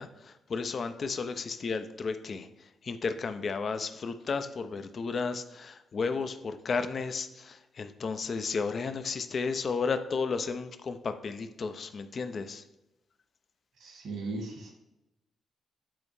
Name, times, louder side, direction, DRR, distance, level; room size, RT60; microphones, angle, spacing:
voice 1, 0.0-2.5 2.8-12.6, left 4 dB, 50° left, 10 dB, 0.6 m, -33 dB
voice 2, 13.8-14.7, right 3 dB, 65° right, 0 dB, 1.8 m, -37 dB
9.0 x 4.3 x 3.2 m, 0.95 s
hypercardioid pair, 40°, 0 cm